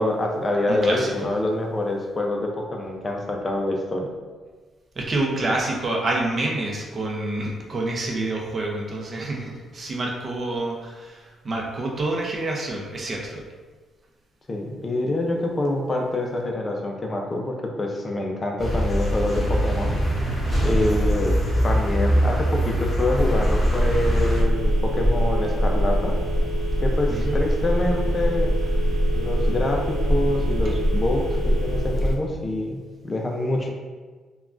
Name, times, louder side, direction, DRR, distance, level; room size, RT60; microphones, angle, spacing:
voice 1, 0.0-4.1 14.5-20.0 20.6-21.4 21.6-26.1 26.8-28.5 29.1-32.8 33.0-33.7, left 1 dB, 30° left, 1 dB, 0.4 m, -26 dB
voice 2, 0.7-1.3 5.0-13.4 27.1-27.4, right 2 dB, 40° right, -1 dB, 0.5 m, -27 dB
sound 1, 18.6-24.4, equal, 15° left, 1.3 m, -23 dB
Telephone, 23.2-32.1, equal, 10° right, 0.9 m, -23 dB
3.5 x 2.2 x 2.4 m, 1.4 s
cardioid pair, 90°, 0 cm